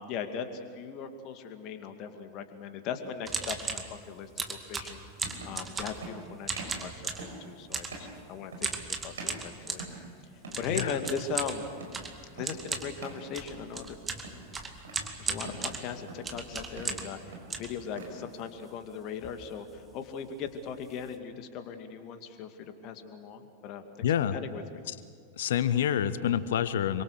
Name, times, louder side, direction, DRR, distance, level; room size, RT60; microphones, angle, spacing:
voice 1, 0.0-5.0 5.4-6.9 7.2-8.7 9.0-10.0 10.6-11.7 12.4-14.0 15.2-24.1 24.3-24.8, left 6 dB, 40° left, 7 dB, 2.2 m, -38 dB
sound 1, 3.0-3.2 4.5-4.6 5.2-5.6 6.0-6.2 6.5-6.8 7.2-7.5 7.9-8.2 8.5-8.9 9.1-10.1 10.4-10.7 11.0-11.3 11.8-12.1 12.4-12.6 13.0-13.3 13.6-13.9 14.2-15.0 15.4-15.7 16.1-16.4 16.7-17.0 17.3-18.2, right 3 dB, 65° right, 5.5 m, -44 dB
sound 2, 3.2-3.9 4.4-6.1 6.4-7.3 7.7-8.0 8.6-9.9 10.5-17.2 17.5-18.3 18.8-18.9 19.1-19.4 19.7-19.9 20.4-20.5 20.8-21.1, right 4 dB, 15° right, 2.3 m, -36 dB
voice 2, 24.0-24.4 24.9-25.0 25.4-27.0, left 9 dB, 60° left, 15 dB, 1.0 m, -27 dB
27.0 x 24.5 x 6.5 m, 2.1 s
figure-of-eight pair, 90°, 0 cm